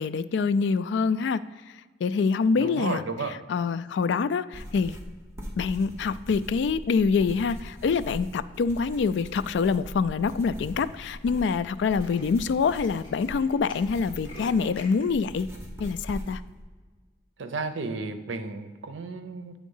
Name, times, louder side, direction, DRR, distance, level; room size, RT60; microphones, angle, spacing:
voice 1, 0.0-1.4 2.0-3.0 3.5-5.0 5.6-15.5 15.8-16.4, left 5 dB, 70° left, 15 dB, 0.3 m, -25 dB
voice 2, 2.6-3.4 17.4-19.5, right 3 dB, 85° right, 9 dB, 0.6 m, -33 dB
sound 1, 4.5-16.6, equal, 15° right, 1.0 m, -41 dB
Tools, 9.0-9.4 10.0-10.1 10.3-10.4 10.7-10.9 11.2-11.3 11.5-15.0, left 1 dB, 25° left, 1.5 m, -47 dB
8.5 x 3.6 x 5.4 m, 1.4 s
head